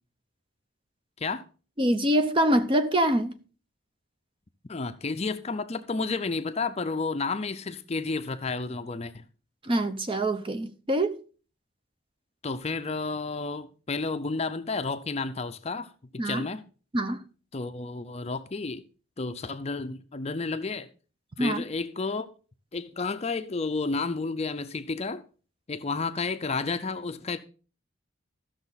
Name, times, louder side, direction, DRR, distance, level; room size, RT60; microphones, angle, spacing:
voice 1, 1.8-3.4 9.6-11.2 16.2-16.5 16.9-17.2 21.4-21.6, right 1 dB, 25° right, 0.7 m, -25 dB
voice 2, 4.7-9.2 12.4-16.6 17.5-18.8 19.2-20.9 21.4-22.3 22.7-25.2 25.7-27.4, left 4 dB, 30° left, 0.5 m, -31 dB
14.0 x 6.5 x 4.0 m
head